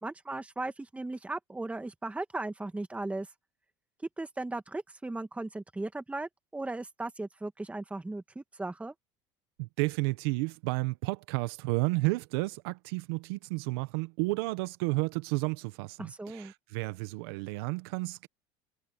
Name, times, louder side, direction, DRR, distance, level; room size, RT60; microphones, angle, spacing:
voice 1, 0.0-3.3 4.2-8.9 16.0-16.5, right 2 dB, 10° right, 1.8 m, -37 dB
voice 2, 9.6-18.3, right 24 dB, 80° right, 1.0 m, -32 dB
supercardioid pair, 100°, 12 cm